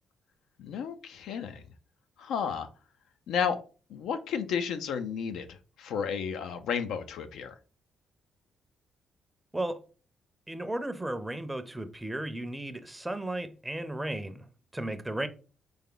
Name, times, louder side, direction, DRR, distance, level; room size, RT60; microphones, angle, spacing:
voice 1, 0.6-1.6 2.2-2.7 3.3-3.6 3.9-7.5, left 7 dB, 80° left, 0.5 m, -32 dB
voice 2, 10.5-14.5 14.7-15.3, right 1 dB, 10° right, 0.5 m, -34 dB
4.0 x 3.4 x 3.8 m
cardioid pair, 90°, 0 cm